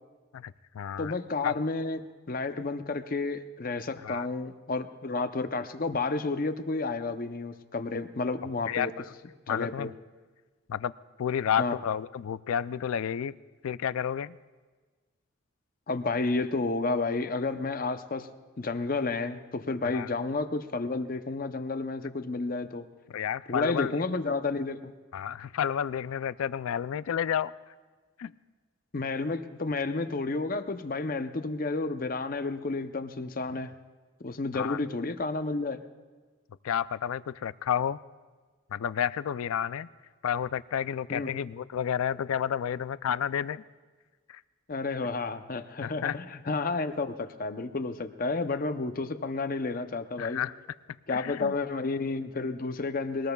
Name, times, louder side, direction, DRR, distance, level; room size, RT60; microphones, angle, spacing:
voice 1, 0.3-1.1 1.4-1.5 4.0-4.3 8.7-8.9 9.5-9.9 10.7-10.9 11.2-13.3 13.6-14.4 19.8-20.1 23.1-23.9 25.1-27.5 28.2-28.3 34.5-34.8 36.6-38.0 38.7-39.9 40.2-43.6 44.3-44.4 45.8-46.2 50.2-50.5 51.1-51.6, left 8 dB, 90° left, 17 dB, 0.4 m, -30 dB
voice 2, 1.0-8.9 9.5-9.9 11.6-11.8 15.9-18.3 18.6-22.9 23.5-24.9 28.9-33.7 34.2-35.8 41.1-41.3 44.7-50.4 51.1-53.3, left 3 dB, 40° left, 9 dB, 0.6 m, -31 dB
23.0 x 19.0 x 2.3 m, 1.4 s
head